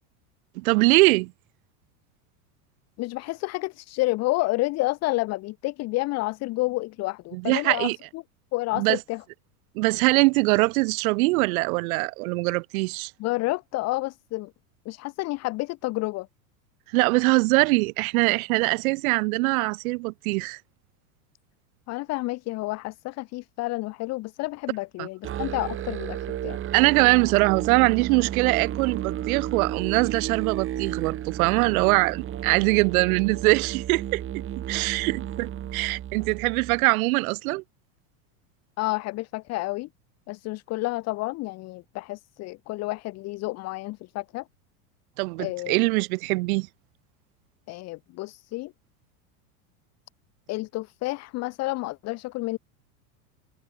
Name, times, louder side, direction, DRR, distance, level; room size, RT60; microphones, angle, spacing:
voice 1, 0.6-1.3 7.3-8.0 8.8-9.0 9.8-13.1 16.9-20.6 25.0-25.1 26.7-34.2 34.7-37.6 45.2-46.7, right 24 dB, 70° right, 0.5 m, -22 dB
voice 2, 3.0-8.2 8.5-9.2 13.2-14.5 14.9-16.3 21.9-26.6 38.8-39.9 40.3-44.4 45.4-45.7 47.7-48.7 50.5-52.6, left 21 dB, 35° left, 0.7 m, -30 dB
Musical instrument, 25.2-36.8, right 11 dB, 30° right, 1.2 m, -33 dB
supercardioid pair, 125°, 44 cm